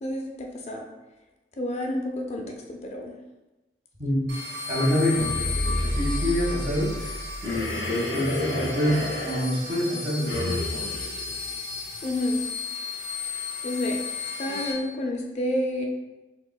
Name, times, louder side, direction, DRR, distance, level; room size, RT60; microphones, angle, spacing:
voice 1, 0.0-0.8 1.6-2.4 2.7-3.1 12.0-12.4 13.1-13.3 13.6-14.0 14.4-15.9, left 1 dB, 40° left, 1 dB, 0.4 m, -29 dB
sound 1, 4.3-14.7, left 5 dB, 85° right, 1.0 m, -35 dB
voice 2, 4.7-10.9 14.5-14.6, equal, 40° right, -5 dB, 1.3 m, -27 dB
sound 2, 4.9-7.8 8.1-8.2, equal, 10° left, 0.8 m, -30 dB
sound 3, 7.4-12.2, left 1 dB, 75° left, 0.6 m, -33 dB
4.7 x 3.5 x 2.2 m, 1.1 s
head